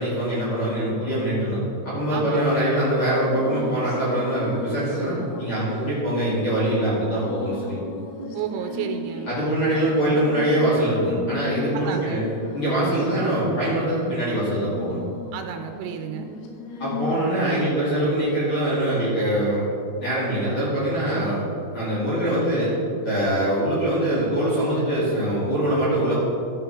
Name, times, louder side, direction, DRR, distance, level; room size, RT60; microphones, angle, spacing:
voice 1, 0.0-7.7 9.2-12.2 12.5-15.0 16.8-19.7 20.0-21.4 21.7-22.7 23.0-26.2, right 1 dB, 40° left, -10 dB, 1.9 m, -23 dB
voice 2, 2.1-2.5 8.3-9.3 11.7-12.2 15.3-16.3, right 9 dB, 90° right, 6 dB, 3.3 m, -31 dB
sound 1, 3.3-17.7, left 3 dB, 80° left, 3.9 m, -36 dB
14.0 x 6.0 x 4.9 m, 2.5 s
omnidirectional pair, 6.0 m